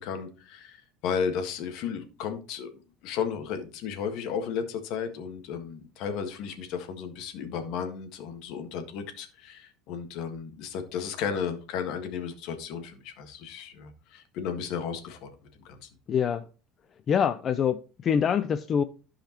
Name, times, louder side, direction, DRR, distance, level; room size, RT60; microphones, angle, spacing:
voice 1, 0.0-2.7 3.0-15.3 15.6-15.9, left 7 dB, 65° left, 1.6 m, -34 dB
voice 2, 16.1-16.4 17.1-18.8, left 7 dB, 35° left, 0.4 m, -25 dB
14.5 x 5.0 x 3.0 m
cardioid pair, 130°, 0 cm